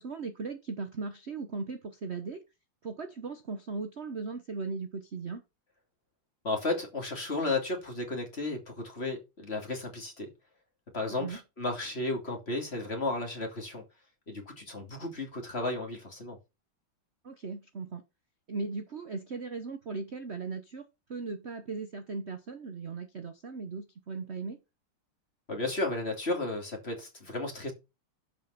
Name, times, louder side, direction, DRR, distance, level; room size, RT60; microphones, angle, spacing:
voice 1, 0.0-2.4 2.8-5.4 11.1-11.4 17.2-18.0 18.5-20.8 21.1-24.6, right 4 dB, 40° right, 1.0 m, -38 dB
voice 2, 6.4-10.3 10.9-13.8 14.3-16.4 25.5-27.7, left 2 dB, 30° left, 3.1 m, -33 dB
12.0 x 5.6 x 5.8 m
omnidirectional pair, 2.3 m